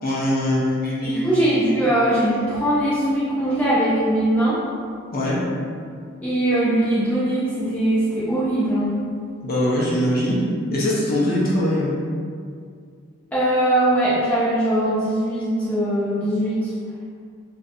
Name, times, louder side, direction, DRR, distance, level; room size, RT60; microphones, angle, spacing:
voice 1, 0.0-1.6 5.1-5.4 9.4-10.5 10.7-11.9, left 1 dB, 45° left, -7 dB, 0.6 m, -22 dB
voice 2, 1.0-4.6 6.2-9.0 13.3-16.7, right 1 dB, 5° left, -12 dB, 0.5 m, -21 dB
3.6 x 2.6 x 2.6 m, 2.2 s
head